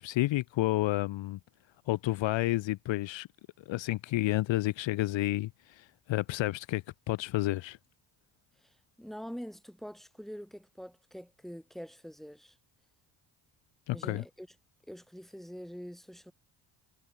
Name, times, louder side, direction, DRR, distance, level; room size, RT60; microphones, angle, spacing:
voice 1, 0.0-1.4 1.9-3.3 3.7-7.8 13.9-14.2, left 17 dB, 65° left, 0.9 m, -30 dB
voice 2, 8.6-12.6 13.9-14.5 14.9-16.3, equal, ahead, 4.2 m, -45 dB
supercardioid pair, 70°, 48 cm